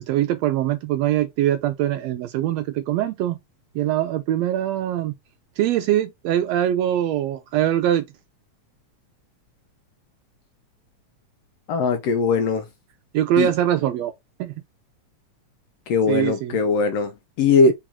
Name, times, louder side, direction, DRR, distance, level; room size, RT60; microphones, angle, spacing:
voice 1, 0.1-3.4 3.7-5.1 5.6-8.1 13.1-14.1 14.4-14.5 16.1-16.6 17.7-17.8, right 12 dB, 80° right, 1.5 m, -22 dB
voice 2, 11.7-12.6 13.4-13.5 15.9-17.7, left 4 dB, 75° left, 1.5 m, -20 dB
4.7 x 2.9 x 3.6 m
omnidirectional pair, 3.3 m